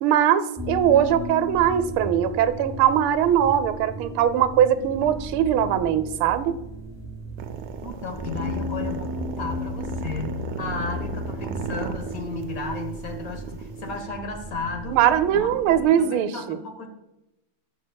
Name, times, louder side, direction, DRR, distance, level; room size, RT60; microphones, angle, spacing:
voice 1, 0.0-6.6 14.9-16.6, right 10 dB, 90° right, 12 dB, 1.4 m, -21 dB
sound 1, 0.6-15.8, equal, 10° right, 1.0 m, -35 dB
sound 2, 7.4-14.0, right 6 dB, 75° right, 0.9 m, -36 dB
voice 2, 7.8-15.0 15.3-15.5 15.8-16.9, left 4 dB, 50° left, 5 dB, 1.4 m, -34 dB
18.5 x 6.3 x 2.2 m, 0.94 s
omnidirectional pair, 2.2 m